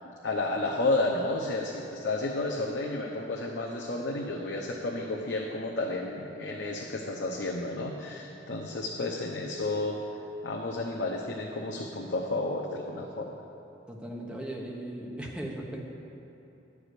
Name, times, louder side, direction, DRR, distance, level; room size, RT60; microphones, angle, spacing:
voice 1, 0.2-10.0 10.4-13.3, left 2 dB, 70° left, -2 dB, 0.8 m, -31 dB
voice 2, 13.9-15.8, right 1 dB, 5° right, -2 dB, 1.1 m, -37 dB
11.5 x 4.9 x 8.2 m, 2.9 s
head